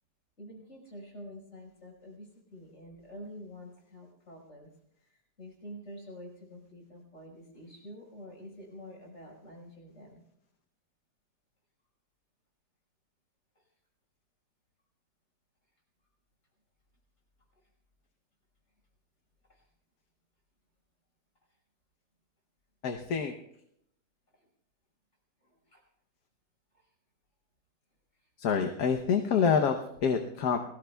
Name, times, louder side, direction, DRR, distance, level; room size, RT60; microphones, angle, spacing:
voice 1, 0.4-4.7 5.4-10.2 19.5-19.6 25.7-25.8, equal, 45° left, 0 dB, 5.5 m, -47 dB
voice 2, 22.8-23.3 28.4-30.6, left 6 dB, 65° left, 4 dB, 1.4 m, -27 dB
28.5 x 20.0 x 2.3 m, 0.77 s
omnidirectional pair, 1.8 m